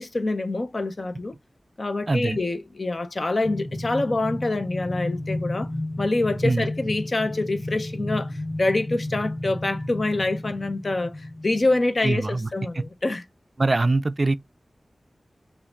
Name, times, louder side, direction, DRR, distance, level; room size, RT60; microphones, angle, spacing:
voice 1, 0.0-1.3 1.8-5.7 6.0-13.2, left 2 dB, 50° left, 0.8 m, -26 dB
voice 2, 2.1-2.4 6.4-6.7 12.0-12.5 12.8-12.9 13.6-14.4, right 2 dB, 45° right, 0.4 m, -23 dB
sound 1, 3.4-11.6, left 1 dB, 30° left, 1.9 m, -32 dB
5.7 x 2.4 x 3.7 m
wide cardioid pair, 70°, 0 cm